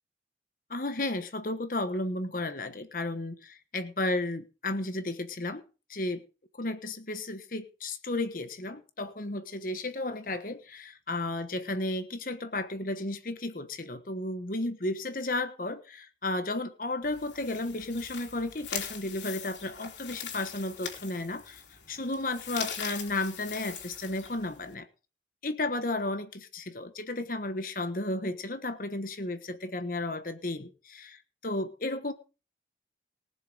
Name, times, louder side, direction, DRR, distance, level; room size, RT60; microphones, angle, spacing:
voice 1, 0.7-5.6 5.9-6.2 6.6-24.9 25.4-32.1, left 2 dB, 50° left, 10 dB, 1.2 m, -33 dB
sound 1, 17.0-24.7, left 7 dB, 85° left, 3.3 m, -41 dB
19.5 x 6.9 x 5.0 m, 0.33 s
head